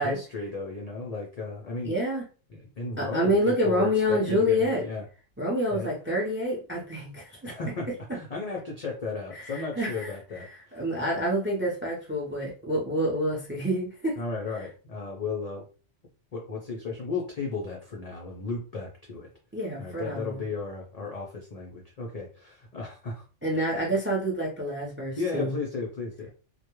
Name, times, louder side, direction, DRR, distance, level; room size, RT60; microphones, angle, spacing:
voice 1, 0.0-2.0 2.5-5.0 5.7-5.9 7.4-10.8 14.2-15.6 16.3-19.3 19.8-23.2 23.5-23.9 25.2-26.3, left 4 dB, 55° left, -1 dB, 0.4 m, -34 dB
voice 2, 1.8-2.2 3.0-4.8 5.4-7.5 9.3-10.4 10.7-14.2 19.5-20.4 23.4-25.6, equal, 15° right, -2 dB, 0.4 m, -27 dB
2.2 x 2.1 x 3.0 m, 0.36 s
omnidirectional pair, 1.2 m